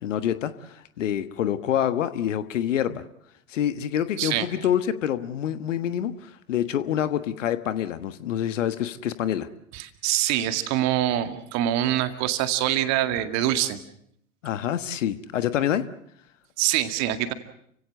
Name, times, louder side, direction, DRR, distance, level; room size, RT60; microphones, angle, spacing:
voice 1, 0.0-3.0 3.5-9.5 14.4-15.9, left 10 dB, 65° left, 12 dB, 1.5 m, -27 dB
voice 2, 4.2-4.5 9.7-13.8 16.6-17.3, right 12 dB, 40° right, 9 dB, 2.1 m, -24 dB
29.5 x 16.5 x 7.7 m, 0.69 s
figure-of-eight pair, 90°, 40 cm